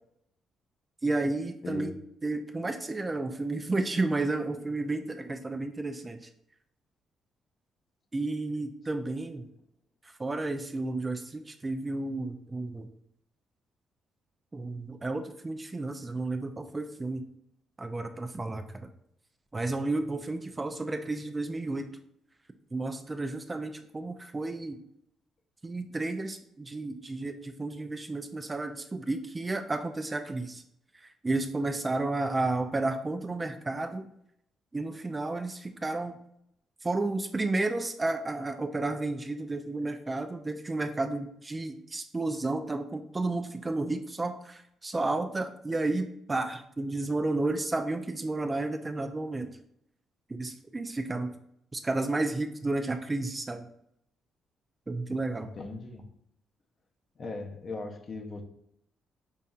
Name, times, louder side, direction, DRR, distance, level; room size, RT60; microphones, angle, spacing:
voice 1, 1.0-1.9 2.2-6.3 8.1-9.5 10.2-12.9 14.5-17.2 17.8-18.9 19.5-21.9 22.7-24.8 25.6-30.6 31.0-34.1 34.7-36.2 36.8-49.6 50.3-51.3 51.7-53.7 54.9-55.5, right 2 dB, 20° right, 7 dB, 0.3 m, -32 dB
voice 2, 55.4-56.0 57.2-58.4, left 3 dB, 45° left, 3 dB, 0.7 m, -38 dB
5.4 x 2.7 x 2.4 m, 0.74 s
cardioid pair, 90°, 0 cm